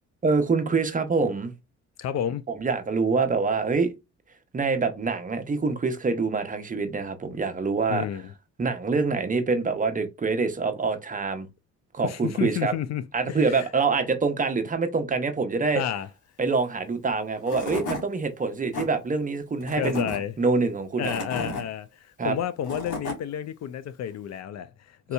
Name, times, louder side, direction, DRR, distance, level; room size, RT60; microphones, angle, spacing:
voice 1, 0.2-1.5 2.5-3.9 4.5-8.1 8.6-11.5 11.9-12.7 13.1-15.8 16.4-20.1 20.4-21.1 22.2-22.3, right 4 dB, 25° right, 0.8 m, -25 dB
voice 2, 2.0-2.4 7.9-8.3 12.0-13.7 15.8-16.1 19.8-20.3 21.0-25.1, left 9 dB, 60° left, 0.5 m, -31 dB
Tools / Wood, 17.1-17.2 17.5-18.0 18.5-18.9 19.6-20.2 20.8-21.6 22.4-23.2, left 3 dB, 80° left, 1.6 m, -33 dB
4.0 x 2.7 x 2.2 m
cardioid pair, 90°, 30 cm